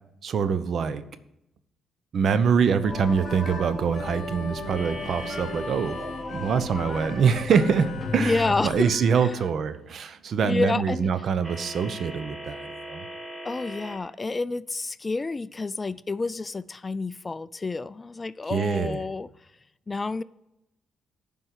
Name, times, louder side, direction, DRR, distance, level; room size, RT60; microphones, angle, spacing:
voice 1, 0.2-1.0 2.1-6.0 6.3-13.0 18.5-19.0, right 6 dB, 60° right, 0.8 m, -24 dB
sound 1, 2.8-8.7, left 2 dB, ahead, 3.2 m, -35 dB
Harmonica, 2.9-9.5, left 6 dB, 60° left, 0.8 m, -43 dB
sound 2, 4.7-8.4 11.4-14.0, equal, 20° right, 2.0 m, -42 dB
voice 2, 8.2-8.9 10.4-11.1 13.4-19.3 19.9-20.2, left 3 dB, 25° left, 0.3 m, -29 dB
10.0 x 5.5 x 8.1 m
cardioid pair, 90°, 0 cm